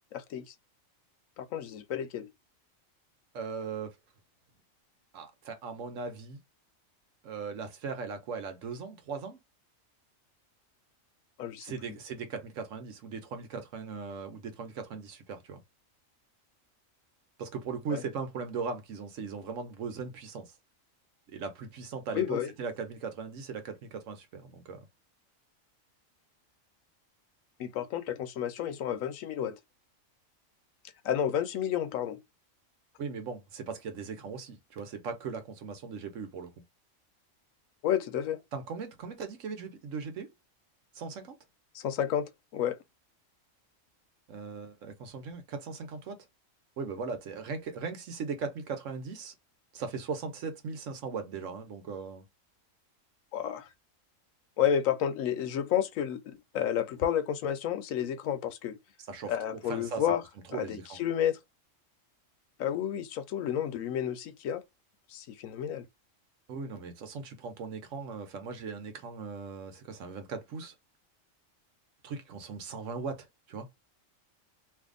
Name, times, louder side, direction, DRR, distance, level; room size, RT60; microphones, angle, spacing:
voice 1, 0.1-0.5 1.4-2.3 11.4-11.7 17.9-18.0 22.1-22.5 27.6-29.6 31.0-32.2 37.8-38.4 41.7-42.8 53.3-53.7 54.6-58.8 59.3-60.2 60.5-61.4 62.6-64.6 65.1-65.9, left 9 dB, 80° left, 1.0 m, -31 dB
voice 2, 3.3-4.0 5.1-6.4 7.2-9.4 11.6-15.6 17.4-20.5 21.3-24.8 33.0-36.5 38.5-40.3 40.9-41.4 44.3-46.2 46.8-49.3 49.7-52.2 59.1-60.0 60.5-61.0 66.5-70.7 72.0-73.7, right 5 dB, 75° right, 1.2 m, -38 dB
2.7 x 2.6 x 3.7 m
omnidirectional pair, 1.4 m